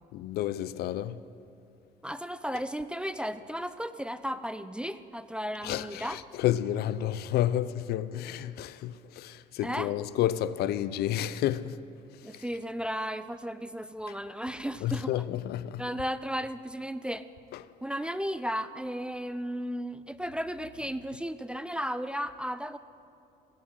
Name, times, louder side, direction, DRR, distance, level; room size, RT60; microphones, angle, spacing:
voice 1, 0.1-1.2 5.6-11.8 12.2-12.4 14.8-15.8 17.5-17.6, left 12 dB, 70° left, 0.4 m, -30 dB
voice 2, 2.0-6.2 9.6-9.9 12.2-15.1 15.8-17.3 17.8-22.8, equal, 5° right, 0.3 m, -34 dB
16.0 x 12.5 x 3.8 m
cardioid pair, 110°, 17 cm